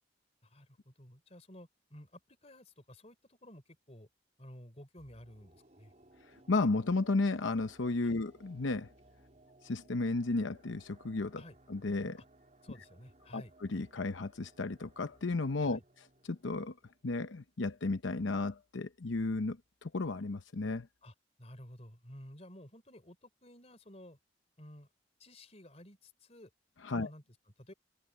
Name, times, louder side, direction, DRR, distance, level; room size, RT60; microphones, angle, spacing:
voice 1, 0.4-4.1 4.4-5.9 8.0-8.2 11.4-11.6 12.2-12.3 12.6-13.5 15.6-15.8 21.0-24.2 24.6-24.9 25.2-26.5 26.9-27.2 27.6-27.7, left 1 dB, 35° left, 4.0 m, -53 dB
sound 1, 5.0-18.1 18.4-18.5, right 1 dB, 40° right, 3.9 m, -63 dB
voice 2, 6.5-8.9 9.6-11.4 11.7-12.2 13.3-15.8 16.3-16.7 17.0-20.9 26.8-27.1, left 3 dB, 85° left, 0.8 m, -33 dB
head